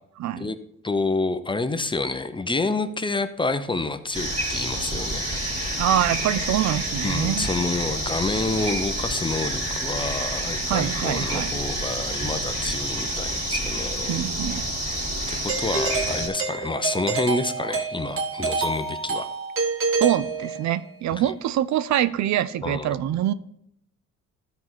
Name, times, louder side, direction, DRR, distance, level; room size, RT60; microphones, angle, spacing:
voice 1, 0.2-0.5 5.8-7.5 10.7-11.6 14.1-14.7 20.0-23.3, right 12 dB, 70° right, 0.5 m, -24 dB
voice 2, 0.8-5.2 7.0-14.2 15.0-19.3 21.2-21.3 22.6-23.0, left 3 dB, 15° left, 0.6 m, -28 dB
sound 1, 4.1-16.3, right 1 dB, 25° right, 3.0 m, -28 dB
Doorbell, 15.5-20.9, right 4 dB, 45° right, 1.5 m, -28 dB
12.5 x 4.5 x 4.1 m
cardioid pair, 90°, 30 cm